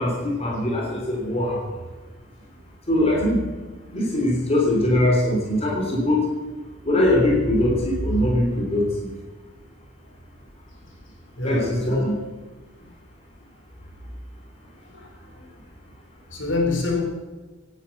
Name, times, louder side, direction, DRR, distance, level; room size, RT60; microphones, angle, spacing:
voice 1, 0.0-1.6 2.9-3.4 3.9-6.2 6.9-9.1 11.4-12.1, left 1 dB, 30° left, -2 dB, 3.6 m, -21 dB
voice 2, 11.3-12.1 12.8-12.9 14.8-15.5 16.3-17.0, left 2 dB, 60° left, 0 dB, 4.2 m, -26 dB
17.0 x 10.0 x 7.3 m, 1.3 s
head